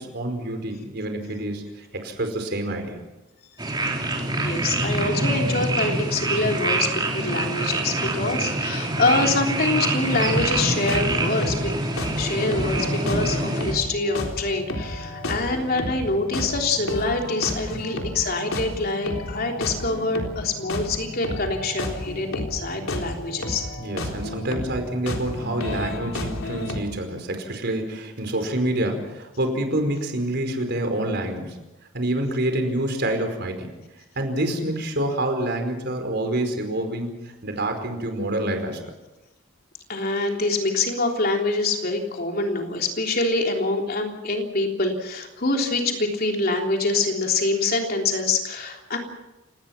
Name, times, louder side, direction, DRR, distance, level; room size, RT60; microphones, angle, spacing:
voice 1, 0.0-3.0 17.7-18.0 23.8-31.6 31.9-33.7 34.1-37.1 37.4-38.8, right 1 dB, 55° right, 5 dB, 4.9 m, -27 dB
sound 1, 3.6-13.7, right 2 dB, 20° right, 3.7 m, -25 dB
voice 2, 4.4-11.7 12.1-23.7 39.9-49.0, left 3 dB, 50° left, 2 dB, 3.5 m, -25 dB
sound 2, 10.1-26.8, left 1 dB, 80° left, 3.7 m, -32 dB
30.0 x 18.5 x 5.9 m, 1.0 s
head